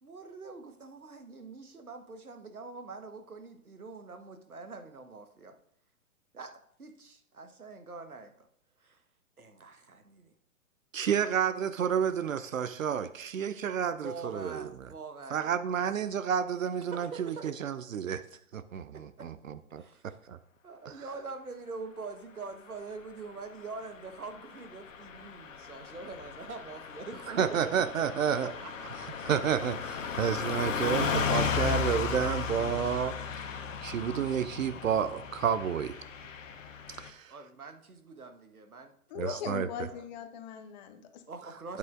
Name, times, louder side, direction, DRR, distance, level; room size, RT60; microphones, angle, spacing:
voice 1, 0.0-5.6 6.3-8.5 8.8-9.0 9.4-10.3 13.9-15.4 16.9-17.5 18.9-19.3 19.8-20.2 20.6-28.9 37.3-38.9 39.2-40.0 41.3-41.8, right 4 dB, 80° right, 7 dB, 1.3 m, -44 dB
voice 2, 10.9-14.7 15.3-18.2 18.5-20.4 20.8-21.0 27.3-28.5 29.2-33.2 33.8-35.9 37.0-37.3 39.2-39.7 41.7-41.8, right 8 dB, 65° right, 13 dB, 0.6 m, -30 dB
Car passing by / Truck, 24.1-37.1, left 6 dB, 60° left, 1.2 m, -35 dB
voice 3, 39.1-41.2, left 8 dB, 30° left, 9 dB, 0.9 m, -40 dB
12.0 x 8.5 x 2.5 m, 0.68 s
figure-of-eight pair, 115°, 43 cm